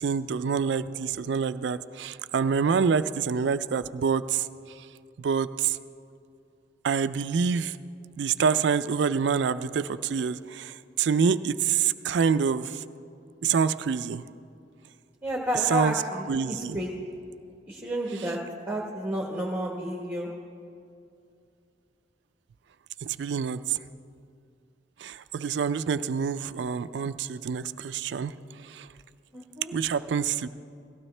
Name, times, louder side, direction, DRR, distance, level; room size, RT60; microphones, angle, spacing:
voice 1, 0.0-4.5 4.8-4.9 5.2-5.8 6.8-7.8 8.2-12.8 13.4-14.2 15.7-16.0 16.3-16.8 18.2-18.3 23.0-23.8 25.0-28.3 28.6-28.9 29.7-30.5, right 6 dB, 70° right, 12 dB, 0.4 m, -26 dB
voice 2, 15.2-16.9 17.7-18.4 18.7-20.3 29.3-29.7, equal, 10° right, -3 dB, 1.2 m, -31 dB
18.0 x 15.5 x 3.3 m, 2.5 s
head